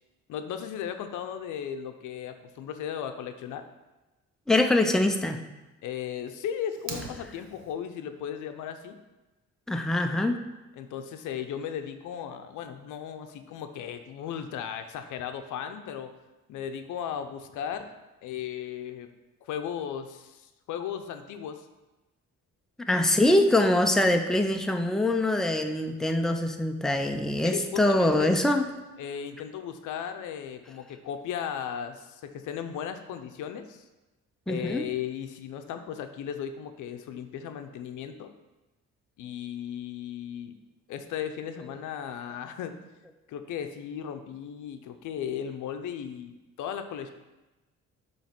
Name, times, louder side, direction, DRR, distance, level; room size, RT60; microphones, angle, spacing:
voice 1, 0.3-3.7 5.8-9.0 10.8-16.1 16.5-17.9 18.2-19.1 19.4-21.7 27.4-28.3 29.0-33.8 34.5-38.3 39.2-40.6 40.9-42.8 43.3-47.1, left 8 dB, 80° left, 8 dB, 0.6 m, -36 dB
voice 2, 4.5-5.4 9.7-10.4 22.9-28.7 34.5-34.9, left 1 dB, ahead, 5 dB, 0.5 m, -24 dB
Fire, 6.7-7.7, right 5 dB, 90° right, 0.9 m, -40 dB
7.3 x 3.1 x 5.8 m, 1.1 s
cardioid pair, 90°, 30 cm